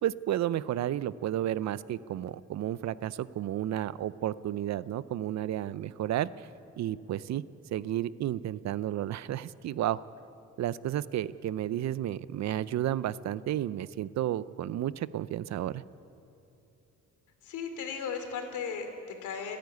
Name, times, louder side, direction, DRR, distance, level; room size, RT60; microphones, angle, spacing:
voice 1, 0.0-6.5 6.8-7.4 7.7-10.0 10.6-15.8, right 12 dB, 65° right, 17 dB, 0.6 m, -32 dB
voice 2, 17.4-19.6, left 6 dB, 80° left, 6 dB, 2.9 m, -36 dB
29.5 x 10.5 x 9.4 m, 2.8 s
cardioid pair, 95°, 30 cm